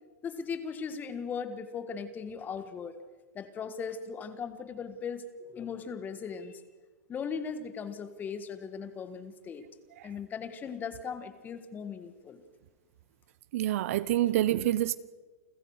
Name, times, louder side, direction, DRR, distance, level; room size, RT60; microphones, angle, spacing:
voice 1, 0.2-3.0 3.3-6.6 7.1-9.7 10.0-12.4, left 6 dB, 20° left, 1.7 m, -38 dB
voice 2, 13.5-15.0, right 14 dB, 60° right, 0.8 m, -27 dB
29.0 x 15.0 x 6.5 m
hypercardioid pair, 135°, 9 cm